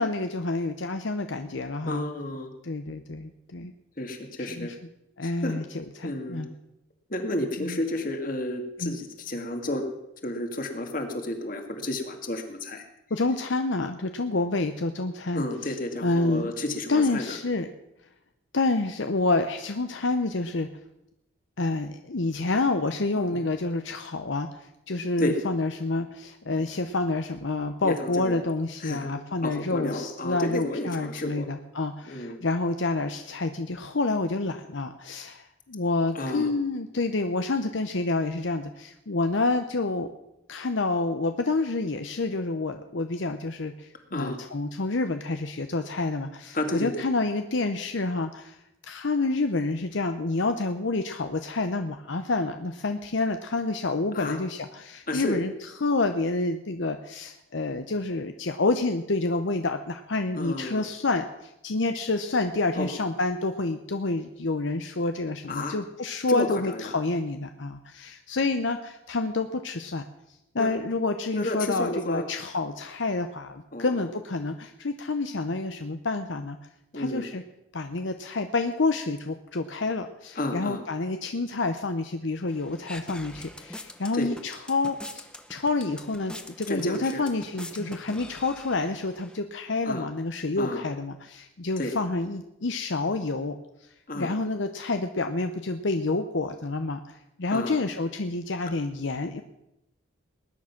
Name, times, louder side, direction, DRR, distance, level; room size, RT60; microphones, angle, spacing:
voice 1, 0.0-2.0 2.6-3.7 4.5-4.7 5.2-6.5 7.6-7.8 8.8-9.0 13.1-15.8 16.0-16.5 16.9-17.7 18.5-20.7 21.6-40.1 40.5-48.6 48.9-70.0 70.5-76.6 76.9-77.4 77.7-93.6 94.1-99.4, left 3 dB, 70° left, 7 dB, 0.8 m, -28 dB
voice 2, 1.9-2.5 4.0-4.7 5.2-5.5 6.0-6.5 7.1-9.8 10.2-12.9 15.3-17.4 23.2-23.5 25.2-25.4 27.8-28.4 28.8-29.1 29.4-31.5 32.1-32.4 36.1-36.5 44.1-44.4 46.5-47.0 54.1-54.4 55.1-55.5 60.4-60.8 62.8-62.9 65.5-65.8 66.3-66.9 70.6-70.7 71.3-72.2 73.7-73.9 76.9-77.3 80.4-80.8 84.1-84.3 86.7-87.2 89.8-90.1 90.6-90.8 91.8-91.9 94.1-94.4 97.5-97.8, left 1 dB, 45° left, 5 dB, 2.0 m, -31 dB
sound 1, 82.5-89.4, left 1 dB, 5° left, 0.9 m, -44 dB
19.5 x 10.0 x 5.9 m, 0.86 s
head